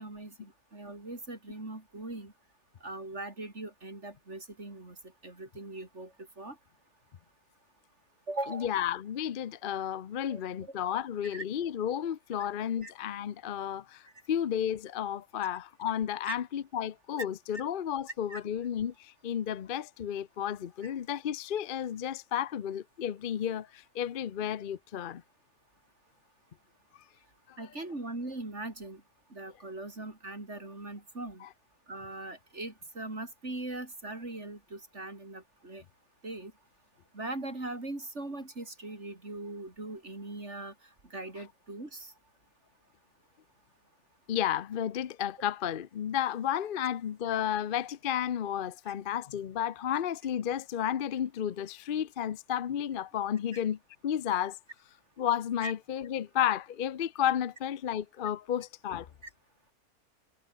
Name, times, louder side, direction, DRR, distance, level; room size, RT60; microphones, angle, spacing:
voice 1, 0.0-2.3 2.8-5.0 5.2-6.6 8.3-8.7 10.3-10.8 11.3-11.4 12.8-12.9 16.2-16.4 17.5-17.6 18.3-18.4 27.6-29.0 29.3-31.4 31.9-35.8 36.2-36.5 37.1-40.7 41.1-42.1 53.5-53.6 55.6-55.7, right 2 dB, 50° right, 4.7 m, -40 dB
voice 2, 8.5-25.2 27.5-27.7 31.4-31.5 44.3-54.6 55.2-59.1, left 10 dB, 50° left, 0.7 m, -32 dB
omnidirectional pair, 1.5 m